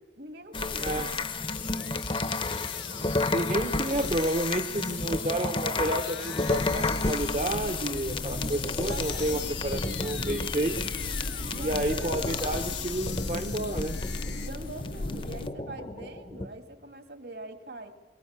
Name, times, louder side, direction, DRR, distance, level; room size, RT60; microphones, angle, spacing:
voice 1, 0.2-1.3 8.4-9.4 11.5-12.4 14.2-17.9, right 2 dB, 65° right, 6 dB, 2.2 m, -43 dB
sound 1, 0.5-16.5, left 3 dB, 30° left, 0.8 m, -32 dB
sound 2, 0.9-14.5, left 9 dB, 85° left, 1.3 m, -44 dB
voice 2, 3.3-10.8 11.5-13.9, right 1 dB, 40° right, 6 dB, 0.9 m, -30 dB
sound 3, 6.5-15.5, left 1 dB, 60° left, 0.7 m, -38 dB
22.5 x 19.5 x 8.8 m, 1.3 s
head